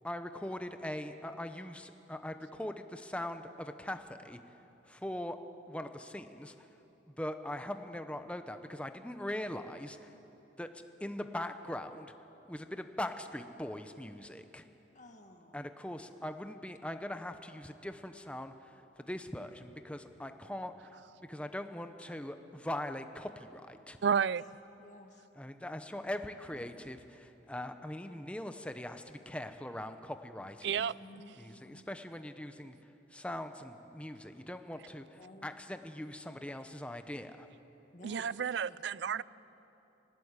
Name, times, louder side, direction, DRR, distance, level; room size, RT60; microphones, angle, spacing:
voice 1, 0.0-4.4 4.9-5.4 5.7-6.5 7.2-10.1 10.6-10.7 11.0-12.1 12.5-14.6 15.5-20.7 21.2-24.0 25.3-30.8 31.4-32.7 33.1-37.5, left 1 dB, 5° left, 8 dB, 0.9 m, -41 dB
voice 2, 15.0-15.6 24.2-24.3 24.8-25.1 26.5-26.7 30.8-31.8 35.2-35.5 37.9-38.8 39.0-39.2, left 1 dB, 40° left, 4 dB, 1.9 m, -54 dB
voice 3, 24.0-24.4 30.6-30.9 38.0-39.2, right 7 dB, 65° right, 20 dB, 0.4 m, -31 dB
21.5 x 19.0 x 8.2 m, 3.0 s
head